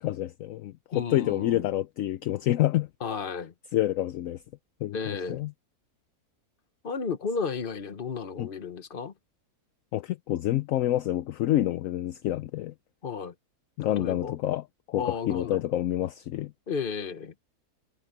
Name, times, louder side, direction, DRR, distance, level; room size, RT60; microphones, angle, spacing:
voice 1, 0.0-2.9 3.7-4.4 4.8-5.5 8.4-8.5 9.9-12.7 13.8-16.5, left 13 dB, 65° left, 0.9 m, -28 dB
voice 2, 0.9-1.7 3.0-3.5 4.9-5.4 6.8-9.1 13.0-13.3 14.0-14.4 14.9-15.6 16.7-17.3, left 5 dB, 35° left, 1.2 m, -33 dB
omnidirectional pair, 1.7 m